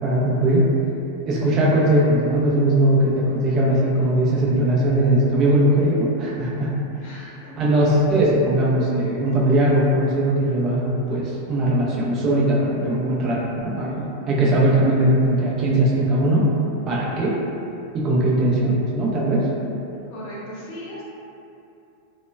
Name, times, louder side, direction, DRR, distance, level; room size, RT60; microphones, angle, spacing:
voice 1, 0.0-0.7 1.3-6.7 7.6-16.5 16.9-17.3 17.9-19.5, right 1 dB, 30° right, -5 dB, 0.5 m, -20 dB
voice 2, 7.0-7.4 20.1-21.0, equal, 45° left, -6 dB, 0.7 m, -36 dB
2.9 x 2.1 x 2.2 m, 2.7 s
figure-of-eight pair, 90°, 0 cm